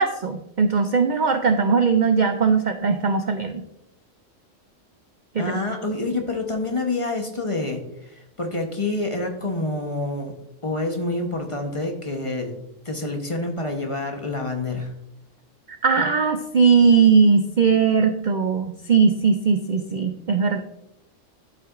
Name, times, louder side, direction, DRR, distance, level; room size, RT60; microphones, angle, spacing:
voice 1, 0.0-3.6 5.3-5.6 15.7-20.6, right 5 dB, 55° right, 7 dB, 0.5 m, -19 dB
voice 2, 5.4-10.3 10.6-12.5 12.8-14.9, left 2 dB, 30° left, 3 dB, 0.9 m, -27 dB
12.0 x 5.8 x 2.5 m, 0.82 s
omnidirectional pair, 1.3 m